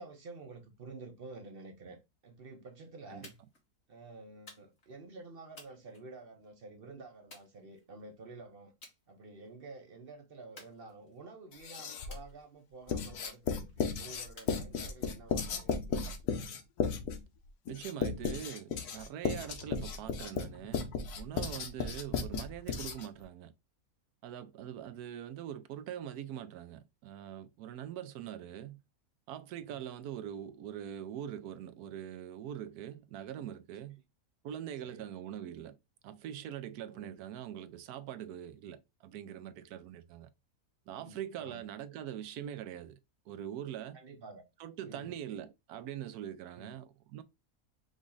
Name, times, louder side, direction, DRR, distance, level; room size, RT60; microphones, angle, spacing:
voice 1, 0.0-3.4 3.9-8.7 9.1-16.0 29.7-29.8 34.8-35.1 36.9-37.1 40.9-41.6 43.9-44.4 44.8-45.1 46.5-46.7, right 3 dB, 50° right, 0.8 m, -50 dB
sound 1, 3.2-3.6 4.5-4.9 5.6-6.5 7.3-8.1 8.8-9.0 9.4-9.8 10.6-11.3 12.1-12.7 13.2-13.8 14.4-15.2, left 2 dB, 45° left, 2.0 m, -56 dB
Writing, 11.5-12.2 12.9-23.2, left 6 dB, 85° left, 1.3 m, -35 dB
voice 2, 17.7-20.9 21.2-23.5 24.2-28.8 29.3-34.0 34.4-35.8 36.0-40.3 40.9-43.0 43.3-44.0 44.6-47.2, right 10 dB, 90° right, 1.1 m, -43 dB
5.1 x 2.4 x 3.7 m
omnidirectional pair, 1.6 m